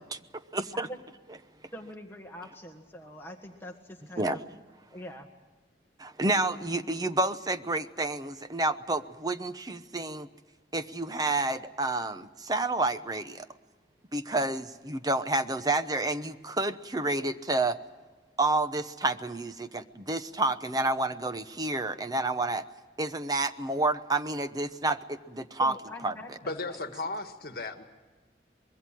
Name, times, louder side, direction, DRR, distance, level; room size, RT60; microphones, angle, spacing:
voice 1, 0.5-0.9 4.2-4.4 6.0-10.3 10.7-13.5 14.1-17.8 18.4-22.6 23.0-25.7 26.0-26.1, right 2 dB, 20° right, 11 dB, 0.8 m, -29 dB
voice 2, 1.7-4.4 4.9-5.3 25.6-26.9, equal, 15° left, 2 dB, 1.5 m, -44 dB
voice 3, 26.4-27.8, left 3 dB, 60° left, 7 dB, 1.6 m, -35 dB
24.5 x 22.0 x 7.6 m, 1.3 s
head